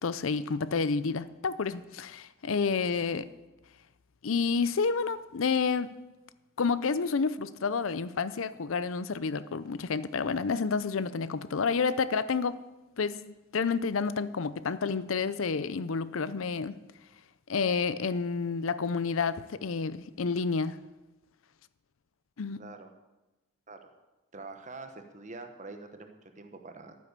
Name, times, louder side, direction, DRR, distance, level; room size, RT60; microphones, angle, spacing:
voice 1, 0.0-3.3 4.2-5.9 6.6-12.6 13.0-16.7 17.5-20.8 22.4-22.6, left 5 dB, 80° left, 0.6 m, -29 dB
voice 2, 22.6-22.9 23.7-23.8 24.3-27.0, right 3 dB, 35° right, 1.2 m, -45 dB
12.0 x 9.5 x 6.7 m
head